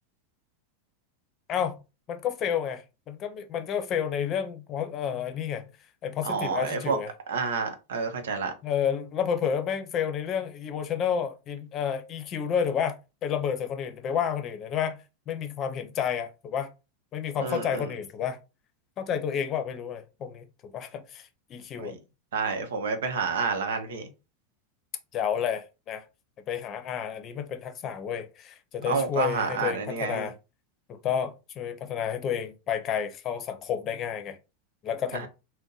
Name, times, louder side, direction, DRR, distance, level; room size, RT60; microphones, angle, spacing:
voice 1, 2.1-5.7 6.0-7.1 8.6-16.7 17.1-18.4 19.0-21.9 25.1-26.0 26.5-30.3 30.9-34.4 34.8-35.3, left 8 dB, 40° left, 0.6 m, -30 dB
voice 2, 6.2-7.0 7.3-8.5 17.4-17.9 21.8-21.9 22.3-24.1 28.9-30.3 35.1-35.3, right 5 dB, 85° right, 0.7 m, -29 dB
2.6 x 2.1 x 3.7 m
hypercardioid pair, 110°, 0 cm